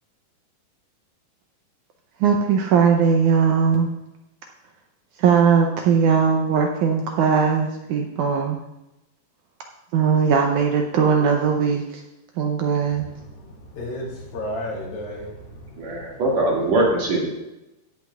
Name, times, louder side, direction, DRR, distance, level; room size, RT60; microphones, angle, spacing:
voice 1, 2.2-3.9 5.2-8.6 9.9-12.0 12.4-13.1, right 6 dB, 80° right, 3 dB, 1.9 m, -19 dB
voice 2, 13.3-16.2, left 1 dB, 80° left, -5 dB, 4.3 m, -33 dB
voice 3, 15.8-17.3, right 2 dB, 55° right, -4 dB, 3.2 m, -21 dB
16.5 x 8.4 x 2.4 m, 0.95 s
omnidirectional pair, 4.0 m